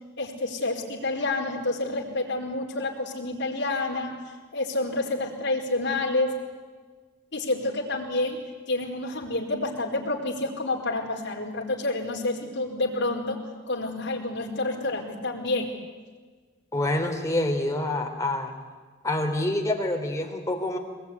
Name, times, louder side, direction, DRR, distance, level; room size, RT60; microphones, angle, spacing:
voice 1, 0.2-4.1 4.5-6.3 7.3-8.4 8.7-13.4 13.7-15.7, left 2 dB, 60° left, 0 dB, 4.7 m, -28 dB
voice 2, 16.7-18.5 19.0-20.8, left 1 dB, 15° left, 2 dB, 3.3 m, -27 dB
23.0 x 21.0 x 9.8 m, 1.4 s
head